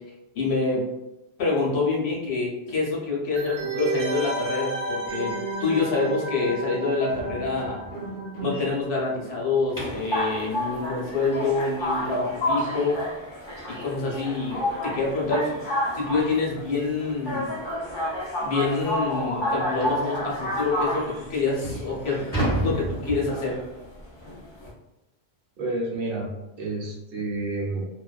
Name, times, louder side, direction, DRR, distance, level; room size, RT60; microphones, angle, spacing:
voice 1, 0.3-0.8 1.4-7.8 8.4-13.0 13.7-15.6 15.9-17.5 18.4-22.3 22.6-23.6, left 3 dB, 80° left, -3 dB, 1.0 m, -26 dB
sound 1, 3.4-8.8 9.1-9.2, right 3 dB, 50° right, 0.3 m, -32 dB
sound 2, 7.1-10.2 13.0-13.1 13.6-13.8 14.1-14.2 14.7-14.8 15.9-16.0 16.4-16.6 17.2-17.3 17.7-17.8 18.3-18.4 19.8-20.1 20.8-20.9 21.4-23.7, right 1 dB, 5° left, 1.4 m, -32 dB
sound 3, 9.8-24.7, left 1 dB, 50° left, 0.3 m, -30 dB
voice 2, 25.6-26.3 26.6-27.9, right 2 dB, 65° right, -2 dB, 0.8 m, -29 dB
2.5 x 2.2 x 2.3 m, 0.96 s
omnidirectional pair, 1.1 m